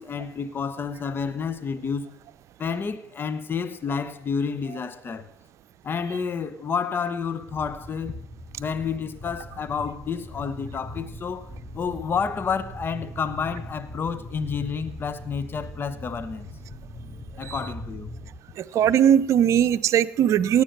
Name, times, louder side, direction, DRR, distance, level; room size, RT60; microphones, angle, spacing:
voice 1, 0.0-2.1 2.6-5.3 5.8-8.2 8.6-16.5 17.4-18.1, left 6 dB, 35° left, 1.1 m, -30 dB
sound 1, 7.5-18.4, equal, 5° left, 4.0 m, -40 dB
voice 2, 18.6-20.6, right 9 dB, 55° right, 0.7 m, -20 dB
18.0 x 8.1 x 6.8 m
hypercardioid pair, 65°, 6 cm